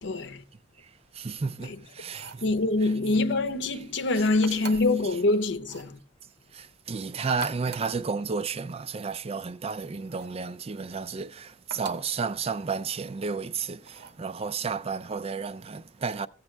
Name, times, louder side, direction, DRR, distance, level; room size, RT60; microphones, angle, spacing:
voice 1, 0.0-0.4 2.4-6.0, left 2 dB, 70° left, 0.8 m, -25 dB
voice 2, 0.8-2.4 2.8-2.9 3.7-3.8 4.5-4.6 5.0-5.2 6.5-16.3, right 5 dB, 35° right, 0.4 m, -32 dB
sound 1, 2.0-2.5 4.4-5.0 5.6-5.9 7.2-8.0 10.1-10.4 11.7-12.1 13.8-14.2, right 5 dB, 60° right, 1.0 m, -43 dB
15.0 x 7.2 x 3.3 m
head